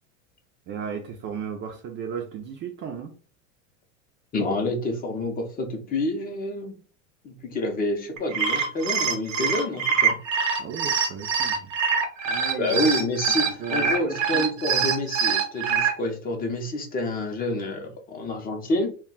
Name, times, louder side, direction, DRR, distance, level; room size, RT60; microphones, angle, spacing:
voice 1, 0.7-3.1 10.6-11.7 12.3-12.8 13.6-14.5, right 7 dB, 30° right, 0.4 m, -35 dB
voice 2, 4.3-6.8 7.2-10.2 12.6-18.9, left 1 dB, 25° left, 0.6 m, -28 dB
sound 1, 8.2-15.9, right 6 dB, 90° right, 0.8 m, -24 dB
2.2 x 2.1 x 3.7 m
supercardioid pair, 115°, 37 cm